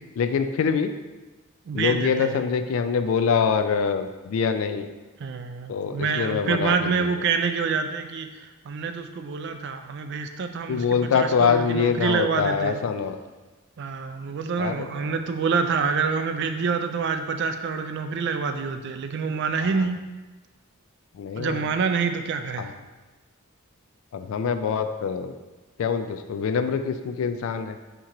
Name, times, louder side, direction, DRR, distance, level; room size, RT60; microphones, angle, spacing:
voice 1, 0.2-0.9 1.7-4.9 5.7-7.1 10.7-13.2 14.6-15.1 19.7-19.9 21.1-21.6 22.6-22.7 24.1-25.3 25.8-27.8, left 6 dB, 70° left, 8 dB, 0.3 m, -24 dB
voice 2, 1.7-2.4 5.2-12.8 13.8-20.0 21.3-22.7, right 5 dB, 55° right, 8 dB, 0.3 m, -27 dB
4.4 x 2.9 x 3.7 m, 1.2 s
head